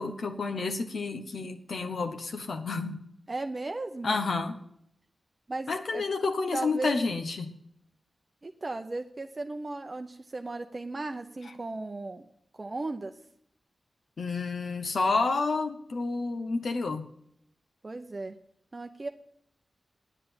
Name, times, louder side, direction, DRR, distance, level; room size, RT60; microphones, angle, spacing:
voice 1, 0.0-3.0 4.0-4.6 5.7-7.5 14.2-17.0, left 3 dB, 70° left, 6 dB, 1.0 m, -30 dB
voice 2, 3.3-4.2 5.5-6.0 6.5-7.0 8.4-12.3 12.5-13.1 17.8-18.4 18.7-19.1, right 2 dB, 35° right, 6 dB, 0.7 m, -36 dB
10.0 x 8.2 x 8.7 m, 0.73 s
wide cardioid pair, 120°, 0 cm